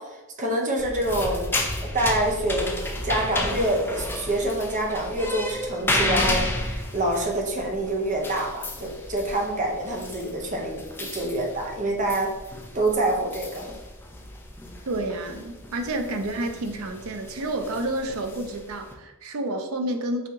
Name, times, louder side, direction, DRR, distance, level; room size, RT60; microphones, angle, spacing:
voice 1, 0.0-12.3 12.7-13.7, right 1 dB, 35° right, 1 dB, 0.7 m, -26 dB
sound 1, 0.8-18.9, left 1 dB, 10° left, 0.4 m, -32 dB
voice 2, 14.9-20.3, right 1 dB, 80° right, 5 dB, 0.5 m, -30 dB
4.1 x 2.8 x 3.6 m, 1.1 s
head